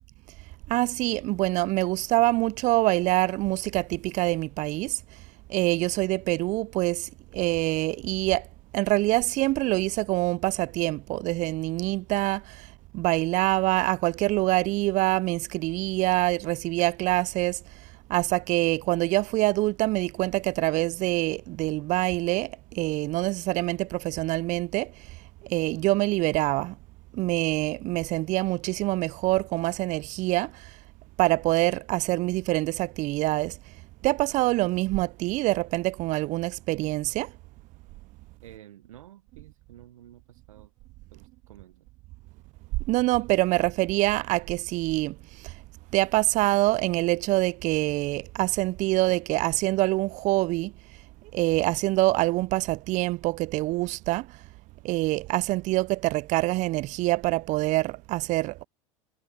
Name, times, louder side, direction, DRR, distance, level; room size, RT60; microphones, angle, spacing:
voice 1, 0.7-4.9 5.5-8.4 8.7-12.4 12.9-17.6 18.1-24.9 25.5-26.7 27.1-30.5 31.2-33.5 34.0-37.3 42.9-45.1 45.9-50.7 51.3-54.3 54.8-58.6, right 20 dB, 45° right, 0.5 m, -25 dB
voice 2, 38.4-40.7 41.1-41.9, right 12 dB, 80° right, 1.1 m, -51 dB
hypercardioid pair, 85°, 17 cm